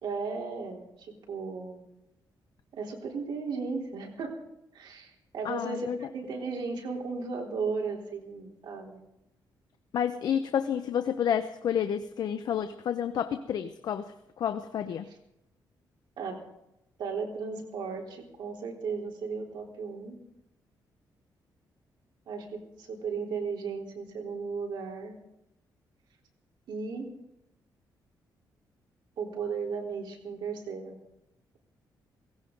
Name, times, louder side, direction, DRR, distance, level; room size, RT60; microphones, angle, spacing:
voice 1, 0.0-1.9 2.7-4.3 4.7-9.0 16.2-16.4 17.0-20.2 22.3-25.1 26.7-27.1 29.2-31.0, right 5 dB, 75° right, 0 dB, 3.6 m, -35 dB
voice 2, 5.4-6.0 9.9-15.1, left 8 dB, 60° left, 9 dB, 0.7 m, -30 dB
17.5 x 16.5 x 3.9 m, 0.84 s
wide cardioid pair, 160°, 8 cm